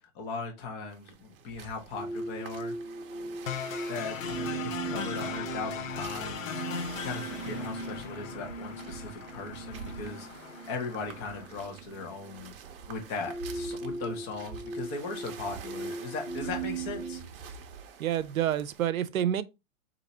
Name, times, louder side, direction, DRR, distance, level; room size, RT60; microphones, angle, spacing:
voice 1, 0.1-2.7 3.9-6.6 6.9-10.3 10.7-12.5 12.9-17.2, left 4 dB, 25° left, 1.1 m, -38 dB
sound 1, 0.9-18.9, right 5 dB, 45° right, 0.8 m, -48 dB
sound 2, 1.9-17.2, right 3 dB, 10° right, 0.4 m, -39 dB
sound 3, 3.5-11.5, left 7 dB, 70° left, 0.9 m, -39 dB
voice 2, 18.0-19.4, right 11 dB, 80° right, 0.6 m, -28 dB
4.0 x 2.8 x 4.2 m
hypercardioid pair, 135°, 41 cm